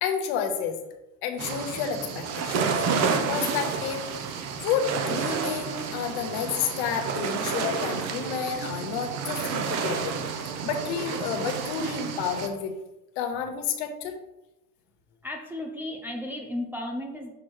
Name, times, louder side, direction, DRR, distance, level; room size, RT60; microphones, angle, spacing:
voice 1, 0.0-0.8 1.2-4.0 4.6-10.2 10.6-12.7 13.2-14.2, left 7 dB, 60° left, 6 dB, 1.1 m, -30 dB
sound 1, 1.4-12.5, right 5 dB, 40° right, 0.8 m, -30 dB
voice 2, 15.2-17.3, left 1 dB, 5° right, 0 dB, 0.4 m, -34 dB
6.1 x 6.0 x 3.2 m, 0.95 s
supercardioid pair, 130°, 40 cm